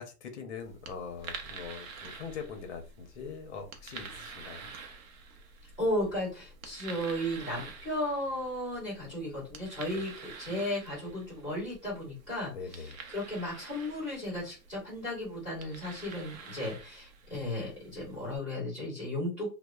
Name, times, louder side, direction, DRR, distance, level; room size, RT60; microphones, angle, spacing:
voice 1, 0.0-4.7 9.9-10.0 12.5-13.0, left 5 dB, 45° left, 5 dB, 0.6 m, -42 dB
sound 1, 0.6-18.4, right 5 dB, 55° right, 0.6 m, -48 dB
voice 2, 5.8-19.5, left 1 dB, 5° right, -12 dB, 0.5 m, -35 dB
2.7 x 2.0 x 2.3 m, 0.33 s
hypercardioid pair, 155°, 50 cm